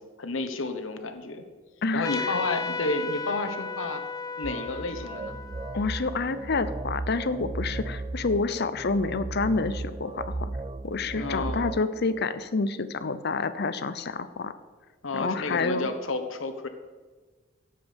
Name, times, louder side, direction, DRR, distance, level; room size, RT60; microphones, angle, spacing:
voice 1, 0.2-1.4 1.9-4.0 4.4-5.4 11.1-11.7 15.0-16.7, left 2 dB, 80° left, 7 dB, 1.2 m, -31 dB
voice 2, 1.8-2.3 5.7-10.5 10.8-14.5 15.1-15.9, left 3 dB, 55° left, 12 dB, 0.7 m, -28 dB
Trumpet, 2.0-7.1, left 4 dB, 20° left, 0.7 m, -36 dB
sound 1, 4.4-11.8, right 2 dB, 25° right, 0.4 m, -36 dB
16.5 x 7.6 x 5.3 m, 1.4 s
head